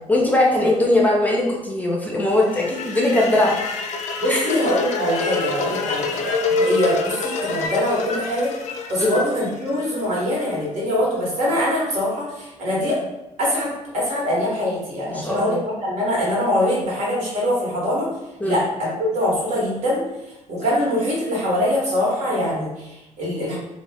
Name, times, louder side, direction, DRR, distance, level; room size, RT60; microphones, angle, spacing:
voice 1, 0.1-3.8 4.3-4.5 9.0-9.2 15.1-15.6 18.4-18.6, left 1 dB, 10° left, -2 dB, 0.5 m, -20 dB
sound 1, 2.3-10.4, left 4 dB, 65° left, 0.4 m, -27 dB
voice 2, 4.2-8.5 8.9-13.0 13.4-18.1 18.4-20.0 20.5-23.6, left 1 dB, 65° right, -4 dB, 1.1 m, -23 dB
2.3 x 2.1 x 3.4 m, 0.94 s
cardioid pair, 95°, 13 cm